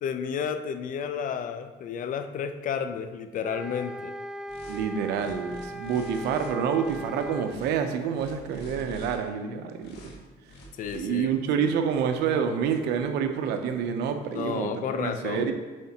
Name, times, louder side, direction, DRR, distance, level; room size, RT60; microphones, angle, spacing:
voice 1, 0.0-4.1 10.8-11.7 14.3-15.5, left 7 dB, 50° left, 10 dB, 0.5 m, -32 dB
sound 1, 3.4-7.6, equal, 5° right, 0.3 m, -38 dB
sound 2, 4.5-4.8 5.1-6.5 6.8-7.7 8.1-9.2 9.8-10.2 10.5-11.0, left 2 dB, 75° left, 1.3 m, -46 dB
voice 2, 4.7-10.1 10.9-15.5, right 7 dB, 85° right, 7 dB, 0.7 m, -28 dB
7.7 x 4.8 x 2.9 m, 1.3 s
cardioid pair, 110°, 17 cm